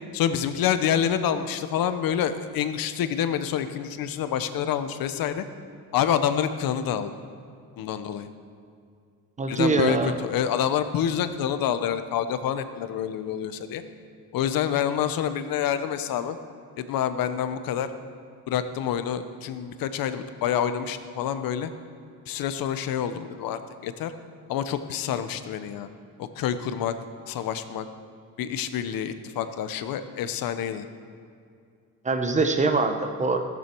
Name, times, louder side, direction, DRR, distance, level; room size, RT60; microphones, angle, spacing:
voice 1, 0.1-5.4 5.9-7.1 7.8-8.3 9.5-13.8 14.3-16.4 16.8-17.9 18.5-21.7 22.3-24.1 24.5-25.9 26.2-27.0 27.3-27.9 28.4-30.9, left 9 dB, 75° left, 11 dB, 1.0 m, -27 dB
voice 2, 9.4-10.1 32.0-33.4, right 3 dB, 20° right, 6 dB, 1.0 m, -23 dB
15.5 x 13.5 x 4.6 m, 2.3 s
cardioid pair, 145°, 35 cm